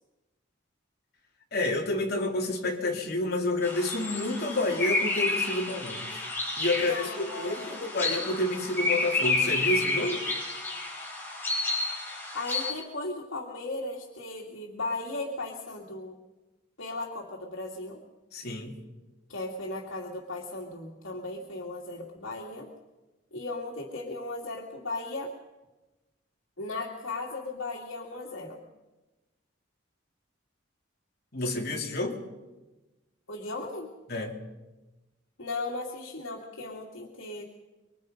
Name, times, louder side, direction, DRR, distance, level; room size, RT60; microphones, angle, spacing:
voice 1, 1.5-6.2 6.6-10.2 18.3-18.7 31.3-32.2 34.1-34.3, left 2 dB, 50° left, 0 dB, 3.4 m, -29 dB
sound 1, 3.6-12.7, left 2 dB, 10° left, 5.0 m, -30 dB
voice 2, 6.7-7.8 12.3-16.2 16.8-18.0 19.3-22.7 23.3-25.3 26.6-28.6 33.3-33.9 35.4-37.4, left 2 dB, 85° left, -2 dB, 2.6 m, -36 dB
25.5 x 24.0 x 5.3 m, 1.1 s
head